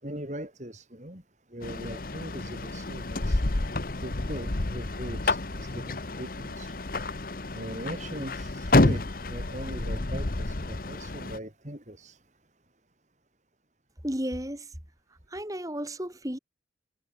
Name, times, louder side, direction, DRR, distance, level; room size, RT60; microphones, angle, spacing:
voice 1, 0.0-1.2 1.5-3.5 4.0-6.8 7.5-12.2, right 1 dB, 40° right, 4.9 m, -40 dB
sound 1, 1.6-11.4, left 2 dB, 50° left, 1.1 m, -29 dB
voice 2, 14.0-14.7 15.3-16.4, equal, 20° right, 3.2 m, -33 dB
head